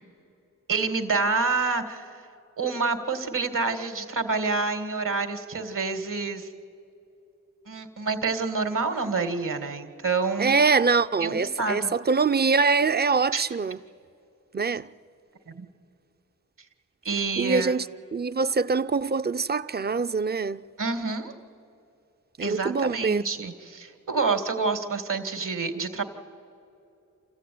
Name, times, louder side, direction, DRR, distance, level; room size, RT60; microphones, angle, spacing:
voice 1, 0.7-2.1 2.6-6.5 7.7-10.6 11.2-11.9 13.3-13.4 15.5-15.7 17.0-17.7 20.8-21.3 22.4-26.0, right 4 dB, 70° right, 2.1 m, -28 dB
voice 2, 10.4-13.8 14.5-14.9 17.4-17.9 18.1-20.6 22.4-23.2, right 4 dB, 30° right, 0.6 m, -24 dB
28.0 x 15.0 x 9.4 m
cardioid pair, 55°, 33 cm